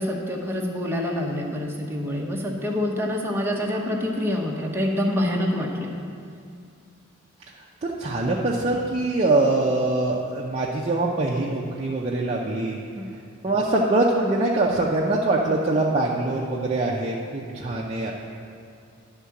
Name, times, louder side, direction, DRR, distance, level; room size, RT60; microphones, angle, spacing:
voice 1, 0.0-5.9 13.0-13.1, left 1 dB, 10° right, -2 dB, 0.9 m, -26 dB
voice 2, 7.8-12.8 13.4-18.1, right 2 dB, 30° right, -3 dB, 0.6 m, -23 dB
11.0 x 3.7 x 7.0 m, 2.4 s
head